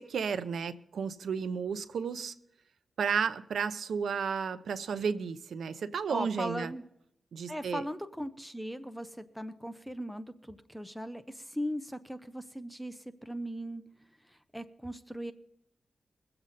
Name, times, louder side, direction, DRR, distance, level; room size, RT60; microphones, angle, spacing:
voice 1, 0.0-2.3 3.0-6.7 7.3-7.9, right 6 dB, 90° right, 0.8 m, -33 dB
voice 2, 6.1-6.8 7.5-13.8 14.3-15.3, equal, ahead, 0.9 m, -38 dB
23.0 x 7.9 x 4.2 m
cardioid pair, 70°, 0 cm